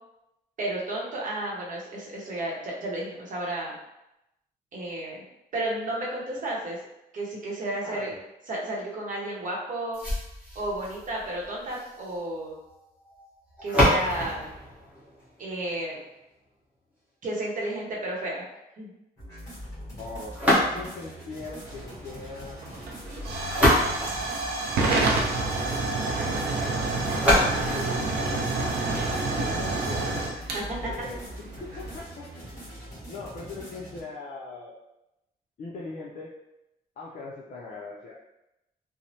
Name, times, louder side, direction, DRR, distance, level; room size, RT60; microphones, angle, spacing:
voice 1, 0.6-3.8 4.7-5.2 5.5-6.8 7.1-8.1 8.5-10.0 10.5-12.6 13.6-14.5 15.4-16.0 17.2-18.4 18.8-18.9 30.5-30.6, right 1 dB, 55° right, -4 dB, 0.8 m, -32 dB
voice 2, 7.8-8.2 20.0-22.6 27.5-31.2 31.6-32.3 33.1-34.7 35.6-36.3 37.0-38.2, left 3 dB, 50° left, -4 dB, 0.4 m, -40 dB
sound 1, 9.9-15.9 20.3-21.2 23.2-25.1 27.1-29.1, left 1 dB, 10° right, 1.0 m, -27 dB
sound 2, 19.2-34.0, equal, 20° left, 1.2 m, -42 dB
Hiss / Fire / Tick, 21.6-32.0, right 3 dB, 85° right, 0.5 m, -29 dB
3.1 x 2.0 x 2.7 m, 0.90 s
wide cardioid pair, 140°, 16 cm